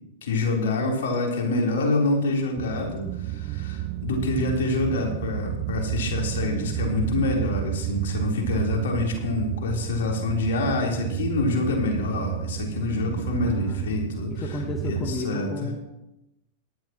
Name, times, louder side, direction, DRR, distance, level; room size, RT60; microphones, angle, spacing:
voice 1, 0.2-15.7, left 2 dB, 65° left, -1 dB, 3.8 m, -26 dB
sound 1, 2.6-15.2, right 15 dB, 40° right, 0.6 m, -31 dB
voice 2, 13.4-13.9 14.3-15.8, left 3 dB, 25° left, 4 dB, 1.5 m, -33 dB
18.0 x 12.0 x 3.1 m, 0.91 s
figure-of-eight pair, 100°, 0 cm